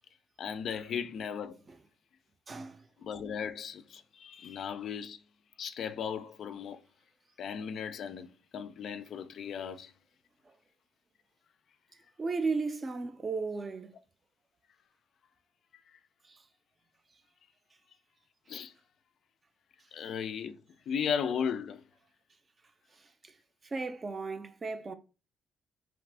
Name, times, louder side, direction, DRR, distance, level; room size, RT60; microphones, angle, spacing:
voice 1, 0.4-1.6 3.0-5.2 5.6-6.8 7.4-9.9 15.9-16.0 18.5-18.7 19.9-20.6 20.9-21.8, left 7 dB, 65° left, 0.3 m, -36 dB
voice 2, 2.5-2.8 12.2-13.9 16.3-16.4 23.6-24.9, right 4 dB, 30° right, 0.5 m, -34 dB
2.9 x 2.5 x 3.3 m
cardioid pair, 90°, 0 cm